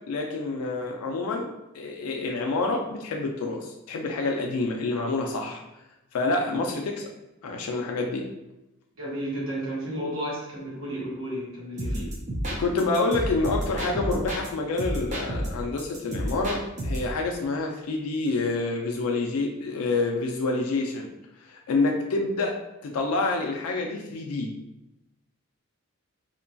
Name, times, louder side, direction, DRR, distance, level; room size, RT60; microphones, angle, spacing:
voice 1, 0.1-1.5 1.7-5.6 6.1-7.1 7.4-8.3 12.6-21.1 21.4-22.6 22.8-24.5, left 3 dB, 85° left, 1 dB, 0.4 m, -27 dB
voice 2, 9.0-12.1, equal, 65° right, -6 dB, 0.8 m, -32 dB
sound 1, 11.8-14.5 14.8-17.1, equal, 30° right, 0.4 m, -31 dB
2.8 x 2.2 x 2.6 m, 0.96 s
head